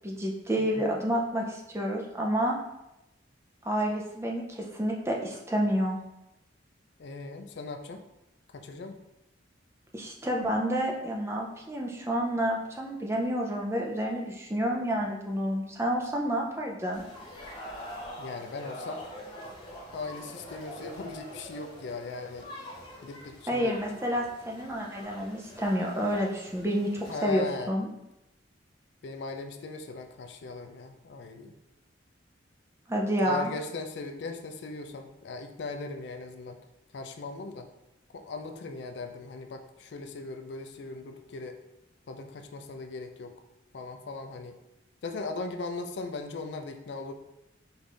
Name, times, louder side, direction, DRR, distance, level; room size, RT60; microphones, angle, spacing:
voice 1, 0.0-2.5 3.6-6.0 9.9-17.0 23.5-26.9 27.2-27.9 32.9-33.5, equal, 15° right, -1 dB, 0.5 m, -29 dB
voice 2, 0.6-0.9 7.0-8.0 8.5-9.0 18.2-19.0 19.9-22.5 23.0-23.8 27.1-27.7 29.0-31.6 33.2-36.6 36.9-37.7 38.1-41.6 42.1-43.3 43.7-44.6 45.0-47.1, left 3 dB, 60° left, 6 dB, 0.4 m, -38 dB
sound 1, 16.9-27.2, left 1 dB, 25° left, 0.9 m, -45 dB
5.3 x 2.6 x 3.3 m, 0.91 s
head